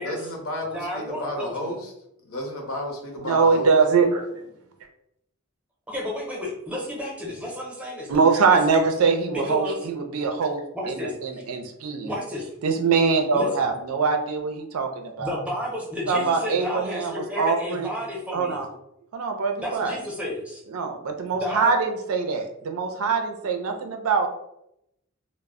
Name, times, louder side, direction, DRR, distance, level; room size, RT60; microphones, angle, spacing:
voice 1, 0.0-1.9 2.2-3.7, left 1 dB, 75° left, 1 dB, 0.7 m, -32 dB
voice 2, 0.7-1.7 5.9-8.1 8.5-8.6 9.3-9.8 10.7-11.4 12.1-12.4 13.3-13.7 15.2-18.6 19.6-20.6 21.3-21.7, left 1 dB, 5° right, -3 dB, 0.6 m, -32 dB
voice 3, 3.2-4.4 8.1-10.6 10.9-12.1 12.6-15.4 16.1-17.9 18.3-18.7 19.1-20.0 20.7-24.3, right 4 dB, 85° right, 5 dB, 0.4 m, -23 dB
2.1 x 2.0 x 3.5 m, 0.80 s
head